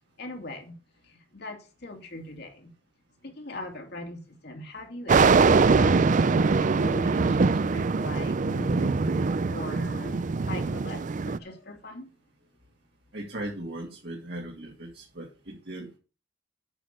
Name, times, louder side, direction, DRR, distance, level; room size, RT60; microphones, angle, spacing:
voice 1, 0.2-0.8 1.0-2.7 3.2-12.1, left 1 dB, 60° left, 2.6 m, -40 dB
sound 1, 5.1-11.4, right 4 dB, 45° right, 0.4 m, -23 dB
voice 2, 13.1-16.0, right 1 dB, 60° right, 2.3 m, -38 dB
8.9 x 6.2 x 6.6 m
head